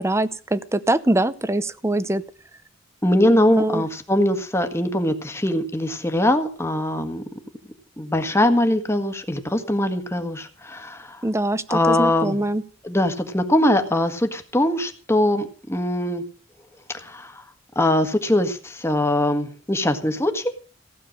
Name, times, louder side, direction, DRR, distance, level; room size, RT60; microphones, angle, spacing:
voice 1, 0.0-2.2 3.6-3.8 11.2-12.6, right 1 dB, 15° right, 15 dB, 0.7 m, -23 dB
voice 2, 3.0-7.2 8.0-11.2 11.7-12.4 12.8-16.2 16.9-17.4 17.7-20.5, left 1 dB, 15° left, 7 dB, 1.6 m, -22 dB
16.0 x 9.0 x 6.5 m, 0.40 s
head